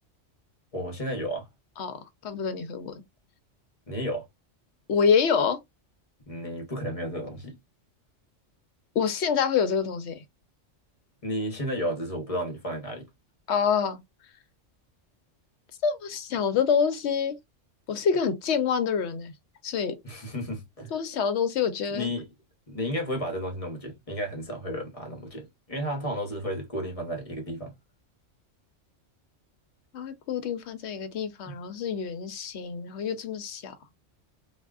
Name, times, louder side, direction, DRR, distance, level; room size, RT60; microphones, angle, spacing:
voice 1, 0.7-1.5 3.9-4.3 6.3-7.6 11.2-13.1 20.0-20.9 21.9-22.3 22.7-27.7 31.5-31.6, equal, 35° left, 0.8 m, -32 dB
voice 2, 2.2-2.9 4.9-5.6 8.9-10.2 13.5-14.0 15.8-17.4 17.9-19.3 19.6-19.9 20.9-22.1 29.9-33.7, left 6 dB, 65° left, 0.9 m, -26 dB
3.5 x 2.3 x 2.3 m
omnidirectional pair, 1.3 m